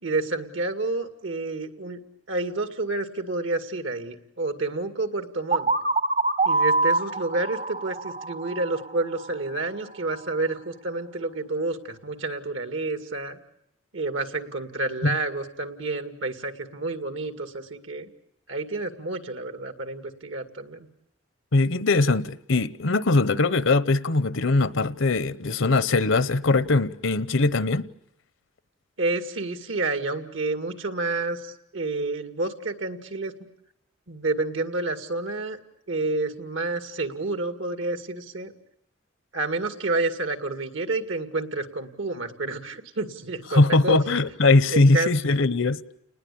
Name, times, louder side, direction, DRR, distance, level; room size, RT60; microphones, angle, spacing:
voice 1, 0.0-2.0 2.3-5.7 6.4-13.4 13.9-18.1 18.5-20.9 29.0-33.3 34.1-35.6 35.9-38.5 39.3-44.0 44.7-45.1, right 2 dB, 80° right, 2.3 m, -29 dB
sound 1, 5.5-9.3, right 3 dB, 40° right, 1.0 m, -25 dB
voice 2, 21.5-27.9 43.5-45.8, left 3 dB, 80° left, 0.9 m, -21 dB
30.0 x 20.0 x 8.5 m
head